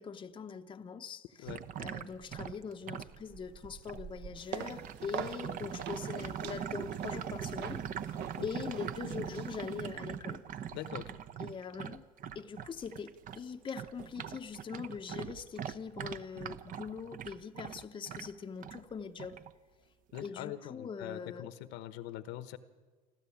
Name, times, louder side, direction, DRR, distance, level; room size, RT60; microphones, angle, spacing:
voice 1, 0.0-1.5 1.8-8.1 8.4-10.4 11.4-12.1 12.3-19.5 20.2-21.5, left 6 dB, 25° left, 0.9 m, -42 dB
sound 1, 1.4-13.4 13.7-18.8 19.2-19.5 20.1-20.3, right 8 dB, 45° right, 0.9 m, -42 dB
sound 2, 4.4-10.0, right 8 dB, 60° right, 1.3 m, -45 dB
voice 2, 10.7-11.2 20.1-22.6, left 13 dB, 65° left, 1.2 m, -43 dB
29.0 x 12.5 x 8.7 m
supercardioid pair, 110°, 20 cm